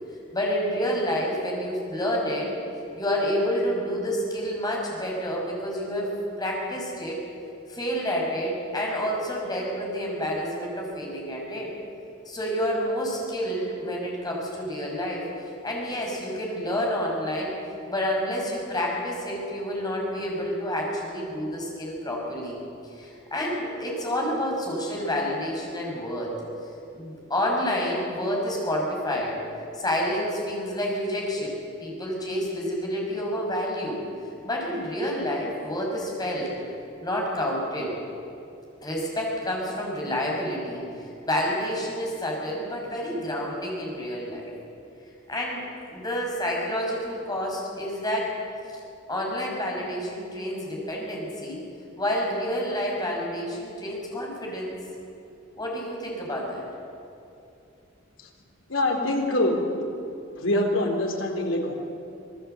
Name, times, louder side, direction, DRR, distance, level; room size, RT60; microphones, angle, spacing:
voice 1, 0.3-2.5 2.9-6.1 6.4-7.2 7.7-11.7 12.3-15.2 15.6-17.5 17.9-22.6 22.9-26.3 26.9-29.4 29.7-34.0 34.4-36.5 37.0-37.9 38.8-44.5 45.3-48.3 48.7-48.8 49.1-51.6 52.0-54.8 55.6-56.6, equal, 20° left, -1 dB, 6.2 m, -29 dB
voice 2, 58.7-59.6 60.4-61.7, left 1 dB, 70° left, 1 dB, 3.9 m, -24 dB
26.0 x 18.5 x 8.1 m, 2.7 s
head